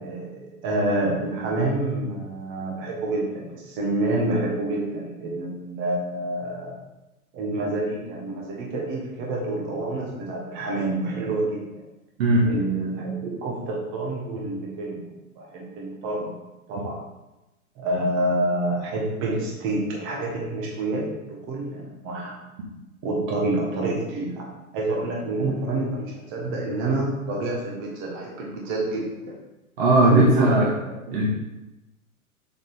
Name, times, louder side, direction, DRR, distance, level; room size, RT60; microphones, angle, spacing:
voice 1, 0.0-6.8 7.3-11.8 12.4-16.4 16.7-17.0 17.7-22.4 23.0-29.4 30.0-31.2, right 2 dB, 25° right, -2 dB, 1.4 m, -28 dB
voice 2, 29.8-30.7 31.1-31.3, right 2 dB, 45° right, -4 dB, 1.7 m, -18 dB
7.5 x 4.2 x 3.8 m, 1.0 s
figure-of-eight pair, 115°, 44 cm